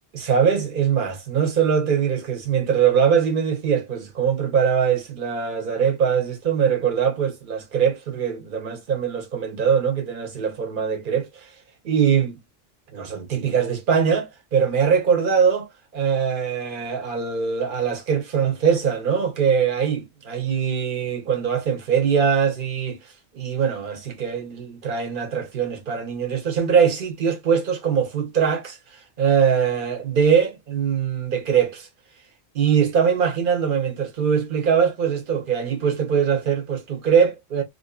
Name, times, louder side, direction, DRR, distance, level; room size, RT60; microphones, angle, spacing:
voice 1, 0.1-11.5 11.8-12.4 12.9-31.9 32.5-37.6, right 7 dB, 55° right, 0.9 m, -22 dB
2.5 x 2.2 x 2.3 m
omnidirectional pair, 1.1 m